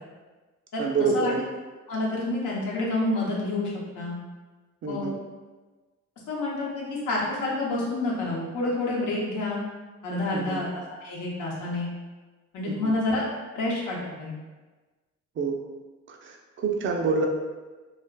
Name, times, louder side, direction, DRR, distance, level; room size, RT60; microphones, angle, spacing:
voice 1, 0.8-1.4 4.8-5.2 10.3-10.6 12.6-12.9 15.4-15.6 16.1-17.3, right 4 dB, 40° right, 1 dB, 0.4 m, -27 dB
voice 2, 1.9-4.1 4.9-5.1 6.3-9.6 10.0-10.7 11.0-11.9 12.5-13.3 13.5-14.3, left 2 dB, 80° left, -4 dB, 0.8 m, -28 dB
2.4 x 2.4 x 2.2 m, 1.3 s
cardioid pair, 90°, 30 cm